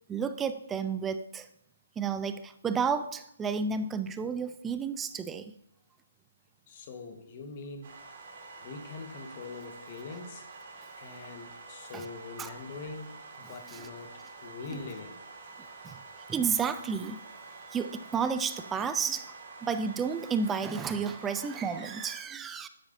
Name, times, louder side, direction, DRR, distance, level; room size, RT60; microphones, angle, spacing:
voice 1, 0.1-1.5 2.0-5.5 11.9-12.1 12.4-12.5 13.7-13.9 14.7-14.8 15.8-16.0 16.3-17.2 17.7-19.3 19.6-22.7, right 6 dB, 10° right, 11 dB, 0.3 m, -31 dB
voice 2, 6.7-8.0 8.6-10.5 11.0-15.2, left 4 dB, 35° left, 4 dB, 1.3 m, -43 dB
sound 1, 7.8-22.1, right 3 dB, 45° right, 1.9 m, -48 dB
9.6 x 6.9 x 2.6 m, 0.78 s
hypercardioid pair, 155°, 0 cm